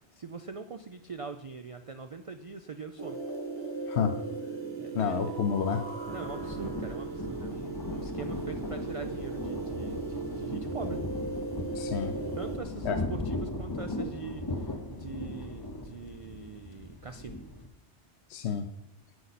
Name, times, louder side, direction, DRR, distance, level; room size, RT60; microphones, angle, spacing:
voice 1, 0.0-3.2 4.7-5.4 6.1-11.0 12.4-17.4, right 5 dB, 65° right, 8 dB, 0.3 m, -42 dB
sound 1, 3.0-12.6, right 3 dB, 25° right, 1.1 m, -37 dB
voice 2, 4.9-5.9 11.7-12.1 12.8-13.0 18.3-18.7, left 7 dB, 70° left, 7 dB, 0.9 m, -29 dB
Thunder, 5.3-17.7, left 2 dB, 25° left, 0.6 m, -38 dB
9.4 x 9.4 x 4.1 m, 0.83 s
omnidirectional pair, 1.2 m